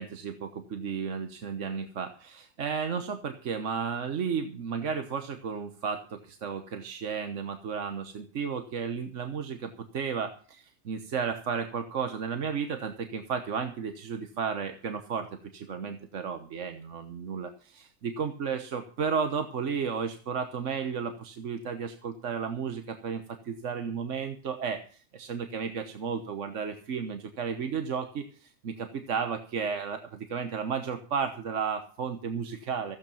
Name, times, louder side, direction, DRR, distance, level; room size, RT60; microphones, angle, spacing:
voice 1, 0.0-33.0, right 6 dB, 80° right, 7 dB, 1.4 m, -33 dB
15.5 x 8.3 x 6.9 m, 0.41 s
omnidirectional pair, 1.3 m